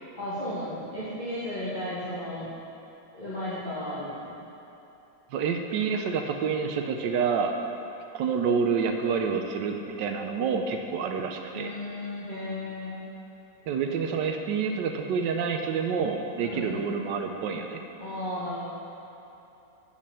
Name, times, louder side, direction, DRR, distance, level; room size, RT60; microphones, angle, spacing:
voice 1, 0.2-2.5 3.1-4.3 11.5-13.0 16.4-16.7 18.0-18.6, left 1 dB, 25° left, -13 dB, 1.9 m, -34 dB
voice 2, 5.3-7.5 8.1-11.7 13.7-17.8, right 6 dB, 75° right, 4 dB, 1.3 m, -28 dB
8.3 x 5.7 x 7.4 m, 3.0 s
omnidirectional pair, 2.0 m